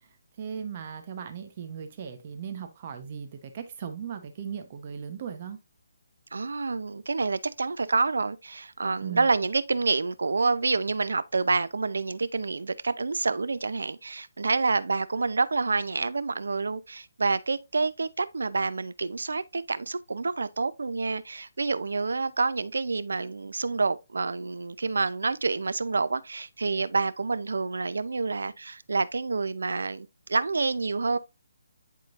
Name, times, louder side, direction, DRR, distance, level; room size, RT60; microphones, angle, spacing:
voice 1, 0.4-5.6 9.0-9.3, right 7 dB, 30° right, 0.9 m, -37 dB
voice 2, 6.3-31.2, right 4 dB, 90° right, 0.6 m, -28 dB
10.5 x 3.7 x 2.5 m
hypercardioid pair, 170°, 0 cm